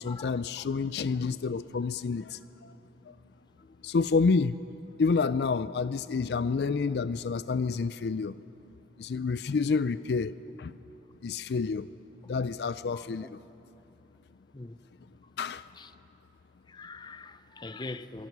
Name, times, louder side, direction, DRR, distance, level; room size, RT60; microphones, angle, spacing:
voice 1, 0.0-2.7 3.1-3.2 3.8-4.6 5.0-8.3 9.0-10.8 11.2-11.9 12.3-13.4 15.4-15.7, left 4 dB, 65° left, 0.4 m, -29 dB
voice 2, 16.7-18.3, left 3 dB, 25° left, 0.6 m, -42 dB
24.0 x 23.0 x 6.1 m
head